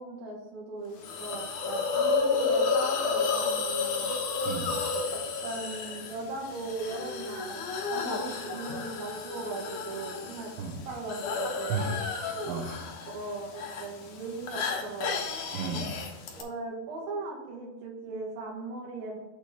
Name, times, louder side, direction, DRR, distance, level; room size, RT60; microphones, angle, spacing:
voice 1, 0.0-4.1 5.1-10.5 10.9-12.0 13.1-15.2 16.3-19.2, right 3 dB, 65° right, -1 dB, 3.0 m, -38 dB
Hiss, 1.0-16.4, left 4 dB, 85° left, 1.7 m, -32 dB
voice 2, 4.5-4.8 10.6-10.8 11.7-12.9 15.5-15.9, right 3 dB, 90° right, 2 dB, 3.4 m, -34 dB
7.6 x 4.3 x 5.0 m, 1.1 s
omnidirectional pair, 5.0 m